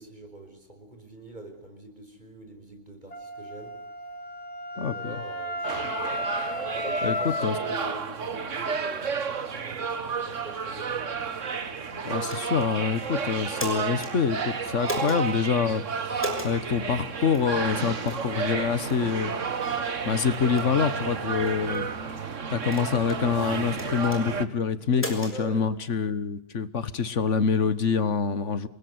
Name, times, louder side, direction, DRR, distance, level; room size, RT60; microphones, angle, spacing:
voice 1, 0.0-3.7 4.7-6.0 6.8-11.0 24.9-25.6, right 1 dB, 40° right, 5.4 m, -44 dB
Wind instrument woodwind instrument, 3.1-7.8, left 1 dB, 30° left, 2.4 m, -34 dB
voice 2, 4.8-5.2 7.0-7.6 11.9-19.3 20.0-21.9 22.5-28.7, left 6 dB, 75° left, 1.6 m, -26 dB
sound 1, 5.6-24.5, right 5 dB, 90° right, 1.8 m, -31 dB
sound 2, 12.2-12.7 13.4-14.1 14.8-15.2 16.2-16.5 17.3-17.5 18.1-18.3 18.8-19.0 19.6-19.7 20.3-20.7 21.4-21.8 22.6-23.2 23.7-24.2 24.9-25.4, left 1 dB, 10° left, 6.3 m, -35 dB
27.5 x 20.5 x 9.5 m
omnidirectional pair, 1.3 m